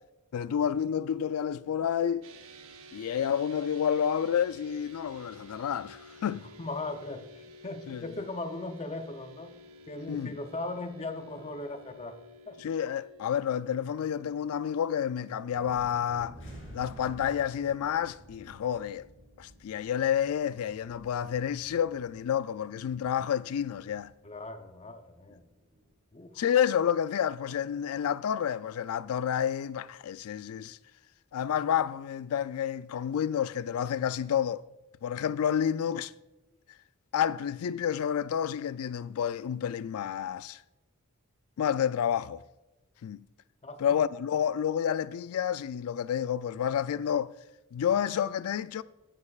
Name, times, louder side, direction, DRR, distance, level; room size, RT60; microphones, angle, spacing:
voice 1, 0.3-2.3 2.9-6.5 7.9-8.0 10.1-10.4 12.6-16.4 16.7-19.1 19.4-24.1 26.4-30.8 31.3-34.6 35.0-36.1 37.1-40.6 41.6-42.4 43.0-43.3 43.8-47.3 47.7-48.8, left 8 dB, 80° left, 0.3 m, -29 dB
sound 1, 2.2-19.6, equal, 75° right, 0.9 m, -53 dB
voice 2, 6.6-9.6 9.9-12.2 12.5-12.6 24.2-25.4 26.1-26.4 43.6-44.0, left 2 dB, 30° left, 0.6 m, -38 dB
Thunder, 15.5-24.9 25.2-25.9 26.3-26.4 26.8-27.0, right 1 dB, 40° right, 3.0 m, -53 dB
sound 2, 16.4-19.9, equal, 60° left, 3.4 m, -52 dB
19.5 x 6.6 x 2.4 m
head